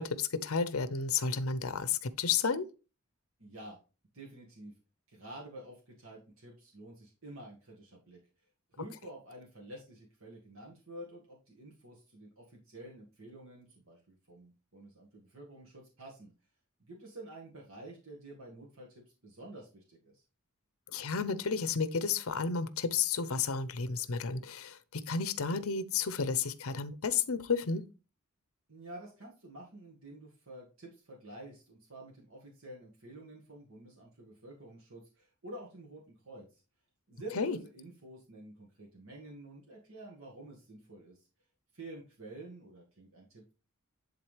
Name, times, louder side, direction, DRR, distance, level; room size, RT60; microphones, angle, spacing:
voice 1, 0.0-2.7 20.9-27.8 37.4-37.6, left 5 dB, 80° left, 0.7 m, -32 dB
voice 2, 3.4-3.8 4.1-4.7 5.1-8.2 8.7-16.3 16.8-20.2 28.7-36.6 37.1-41.3 41.7-43.5, right 1 dB, 70° right, 1.8 m, -49 dB
11.0 x 3.8 x 3.3 m
head